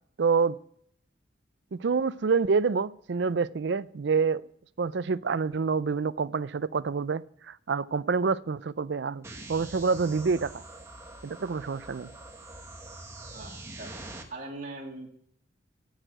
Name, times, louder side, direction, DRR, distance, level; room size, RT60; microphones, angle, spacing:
voice 1, 0.2-0.6 1.7-4.4 4.8-10.6 11.2-12.1, right 5 dB, 65° right, 0.4 m, -27 dB
sound 1, 9.2-14.2, right 2 dB, 15° right, 1.2 m, -44 dB
voice 2, 13.3-13.9 14.3-15.1, right 2 dB, 40° right, 2.8 m, -41 dB
14.5 x 6.5 x 6.1 m
head